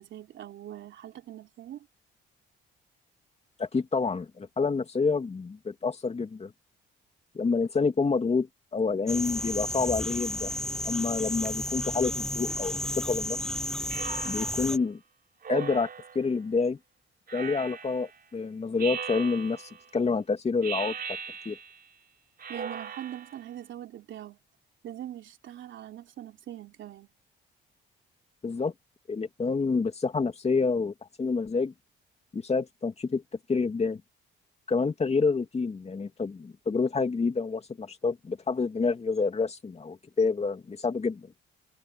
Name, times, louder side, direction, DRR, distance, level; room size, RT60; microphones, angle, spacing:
voice 1, 0.0-1.9 22.5-24.4 24.8-27.1, right 12 dB, 70° right, 3.3 m, -42 dB
voice 2, 3.6-6.5 7.3-10.5 10.8-13.4 14.2-15.0 15.5-15.9 16.1-16.8 17.3-20.9 21.4-21.6 28.4-28.7 29.1-31.7 32.3-33.2 33.5-34.0 34.7-41.3, left 4 dB, 30° left, 2.7 m, -28 dB
sound 1, 9.1-14.8, left 1 dB, 5° left, 0.5 m, -32 dB
Speech synthesizer, 13.9-14.7 15.4-16.3 17.3-18.1 18.8-19.8 20.6-21.8 22.4-23.4, right 6 dB, 50° right, 4.8 m, -38 dB
cardioid pair, 90°, 20 cm